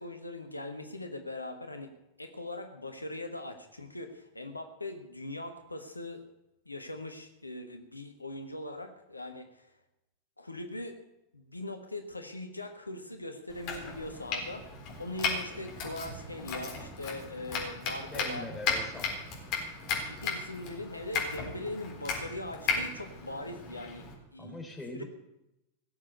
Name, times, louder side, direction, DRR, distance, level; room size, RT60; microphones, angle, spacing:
voice 1, 0.0-6.2 6.6-9.7 10.4-10.9 11.3-14.7 15.0-18.5 20.0-24.6 24.9-25.0, left 1 dB, 85° left, 6 dB, 1.4 m, -41 dB
Domestic sounds home sounds, 13.5-24.1, left 5 dB, 40° left, 4.0 m, -36 dB
voice 2, 18.1-19.3 24.4-25.0, left 2 dB, 10° left, 1 dB, 3.9 m, -42 dB
17.5 x 7.5 x 8.6 m, 0.89 s
figure-of-eight pair, 90°, 0 cm